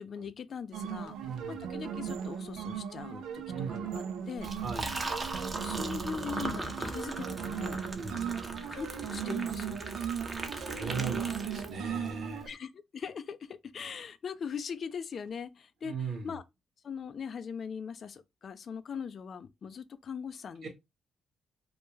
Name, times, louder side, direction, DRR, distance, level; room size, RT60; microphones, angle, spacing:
voice 1, 0.0-1.2 1.5-4.5 5.6-7.8 8.7-9.8 12.5-16.4 16.8-20.7, left 6 dB, 50° left, 0.3 m, -41 dB
sound 1, 0.7-12.5, right 8 dB, 85° right, 0.4 m, -37 dB
voice 2, 1.2-1.6 3.4-3.9 4.6-5.0 7.9-8.2 10.2-12.5 15.8-16.3 20.6-20.7, right 5 dB, 65° right, 0.9 m, -38 dB
Liquid, 4.4-12.1, right 2 dB, 25° right, 0.5 m, -39 dB
2.2 x 2.2 x 3.1 m
cardioid pair, 90°, 0 cm